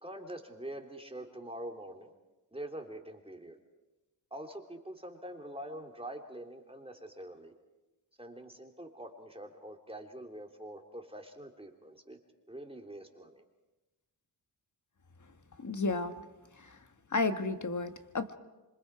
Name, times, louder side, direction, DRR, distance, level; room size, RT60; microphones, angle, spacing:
voice 1, 0.0-2.1 2.5-3.6 4.3-7.5 8.2-12.2 12.5-13.4, right 1 dB, 15° right, 2 dB, 3.3 m, -45 dB
voice 2, 15.6-16.1 16.6-16.8 17.1-18.4, left 3 dB, 45° left, 9 dB, 1.6 m, -32 dB
26.5 x 25.0 x 4.9 m, 1.1 s
cardioid pair, 60°, 43 cm